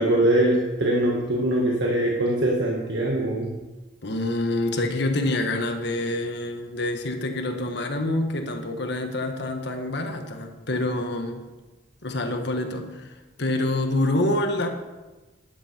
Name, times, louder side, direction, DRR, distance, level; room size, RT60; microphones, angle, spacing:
voice 1, 0.0-3.5, right 1 dB, 60° right, -2 dB, 1.8 m, -22 dB
voice 2, 4.0-11.4 12.0-13.1 13.4-14.7, left 1 dB, 60° left, 5 dB, 1.5 m, -26 dB
12.0 x 11.5 x 4.5 m, 1.2 s
head